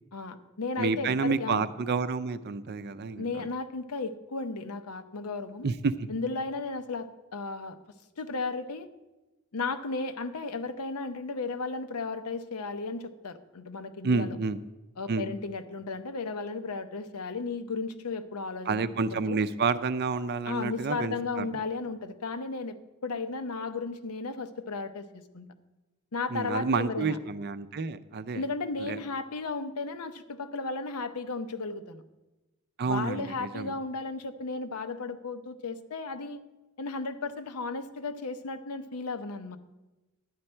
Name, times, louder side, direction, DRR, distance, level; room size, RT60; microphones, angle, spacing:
voice 1, 0.1-1.7 3.2-5.7 6.1-7.8 8.2-8.9 9.5-14.4 15.0-18.8 19.1-19.4 20.5-25.5 26.1-27.2 28.3-32.0 32.8-36.4 36.8-39.6, left 3 dB, 90° left, 10 dB, 0.7 m, -34 dB
voice 2, 0.8-3.5 5.6-6.1 14.0-14.6 15.1-15.3 18.7-21.5 26.3-28.4 28.8-29.0 32.8-33.7, right 4 dB, 50° right, 12 dB, 0.5 m, -29 dB
11.0 x 9.6 x 4.4 m, 1.1 s
head